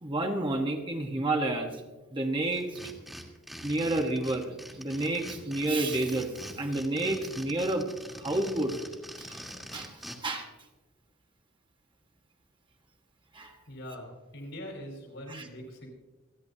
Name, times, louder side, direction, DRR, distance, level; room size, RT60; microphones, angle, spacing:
voice 1, 0.0-1.7 2.1-2.7 3.6-6.3 6.6-7.9 8.2-8.7 9.2-9.4 9.7-10.0 10.2-10.5 13.3-13.5 15.3-15.4, right 2 dB, 25° right, 3 dB, 1.2 m, -30 dB
sound 1, 2.5-10.2, equal, ahead, 1.7 m, -44 dB
voice 2, 13.7-15.9, equal, 70° left, 1 dB, 4.3 m, -42 dB
27.0 x 10.5 x 2.8 m, 1.2 s
head